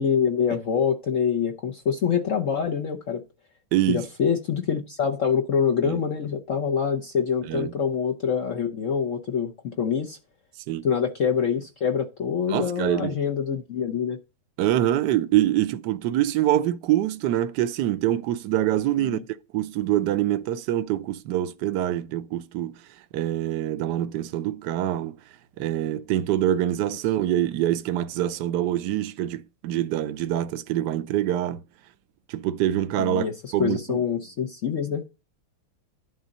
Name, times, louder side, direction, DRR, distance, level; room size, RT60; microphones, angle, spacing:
voice 1, 0.0-3.2 3.9-10.2 10.8-14.2 19.0-19.2 33.0-35.0, left 7 dB, 60° left, 0.8 m, -25 dB
voice 2, 3.7-4.1 5.8-6.0 7.5-7.7 10.7-10.9 12.5-13.2 14.6-19.2 19.5-22.7 23.1-25.2 25.6-31.6 32.3-33.3 33.5-34.0, right 12 dB, 65° right, 1.1 m, -25 dB
11.5 x 4.0 x 5.4 m
omnidirectional pair, 2.3 m